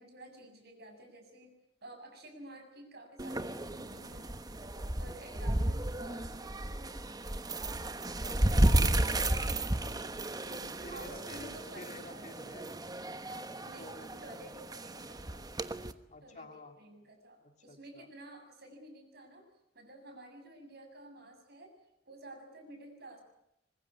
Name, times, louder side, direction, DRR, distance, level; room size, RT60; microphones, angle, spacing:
voice 1, 0.0-1.5 1.8-4.3 5.0-6.9 10.5-12.2 13.2-13.9 14.2-15.4 16.2-19.4 19.7-21.7 22.0-23.2, right 1 dB, 60° right, 6 dB, 7.4 m, -51 dB
sound 1, 3.2-15.9, right 1 dB, 20° right, 1.1 m, -33 dB
voice 2, 8.2-10.2 10.7-12.7 13.6-14.5 16.1-16.8 17.4-18.1, left 2 dB, 40° left, 5 dB, 3.3 m, -52 dB
24.5 x 22.0 x 9.7 m, 0.82 s
head